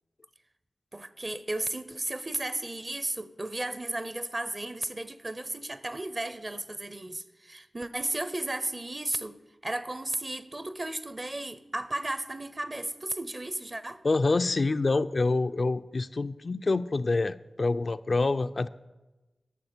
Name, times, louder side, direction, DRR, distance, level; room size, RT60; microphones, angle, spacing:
voice 1, 0.9-9.4 9.6-14.0, right 2 dB, 35° right, 13 dB, 0.8 m, -34 dB
voice 2, 14.0-18.7, left 3 dB, 55° left, 11 dB, 0.4 m, -26 dB
11.5 x 6.4 x 7.2 m, 1.1 s
cardioid pair, 50°, 0 cm